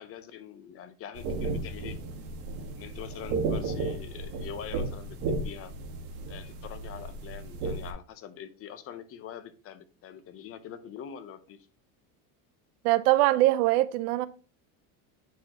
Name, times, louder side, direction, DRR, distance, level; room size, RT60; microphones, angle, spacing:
voice 1, 0.0-2.0 2.7-5.7 6.3-11.7, left 9 dB, 35° left, 0.6 m, -44 dB
sound 1, 1.2-7.9, right 3 dB, 70° right, 1.7 m, -34 dB
voice 2, 12.8-14.3, right 16 dB, 85° right, 0.6 m, -22 dB
9.2 x 4.2 x 2.9 m
cardioid pair, 150°, 42 cm